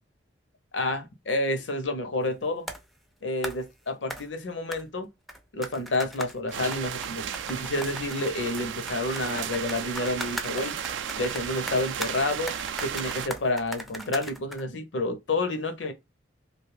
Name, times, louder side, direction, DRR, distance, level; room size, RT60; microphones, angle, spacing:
voice 1, 0.7-2.7 3.2-5.1 5.5-10.8 11.2-12.5 12.8-15.9, left 2 dB, 70° left, 0.7 m, -29 dB
sound 1, 2.7-2.9 3.4-3.6 4.1-4.3 4.7-4.8 5.3-8.3 8.6-12.1 12.5-14.6, equal, ahead, 0.4 m, -38 dB
sound 2, 6.5-13.3, right 8 dB, 70° right, 0.3 m, -34 dB
2.7 x 2.3 x 3.2 m
head